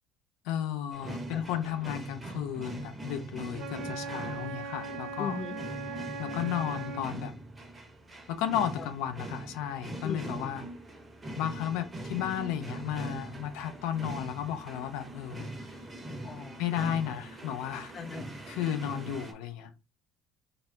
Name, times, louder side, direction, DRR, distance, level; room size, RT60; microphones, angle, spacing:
voice 1, 0.4-5.4 6.2-7.3 8.3-10.6 11.3-15.5 16.6-17.9 18.5-19.7, left 10 dB, 85° left, 0.8 m, -33 dB
sound 1, 0.9-19.3, right 1 dB, 15° right, 1.1 m, -42 dB
Wind instrument woodwind instrument, 3.5-7.1, right 4 dB, 80° right, 1.1 m, -39 dB
voice 2, 5.2-5.5 8.8-8.9 10.0-10.6 16.2-16.6 17.9-18.3, left 5 dB, 25° left, 0.5 m, -39 dB
4.0 x 2.8 x 3.7 m
cardioid pair, 175°, 0 cm